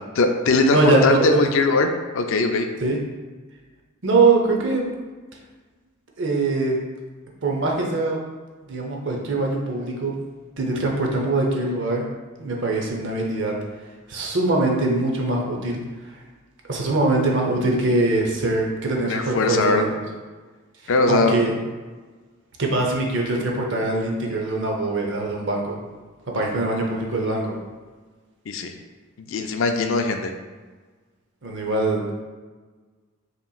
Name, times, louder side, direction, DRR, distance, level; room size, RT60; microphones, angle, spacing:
voice 1, 0.1-2.7 19.0-19.8 20.9-21.4 28.5-28.7 29.2-30.3, left 3 dB, 60° left, 5 dB, 0.4 m, -20 dB
voice 2, 0.7-1.6 2.8-3.0 4.0-4.9 6.2-6.8 7.4-8.2 8.7-10.1 10.6-12.1 12.4-13.5 14.1-15.8 16.1-16.2 16.7-20.0 21.1-21.5 22.6-25.8 26.3-27.5 31.4-32.1, right 2 dB, 55° right, 0 dB, 0.7 m, -22 dB
5.4 x 3.0 x 2.3 m, 1.4 s
head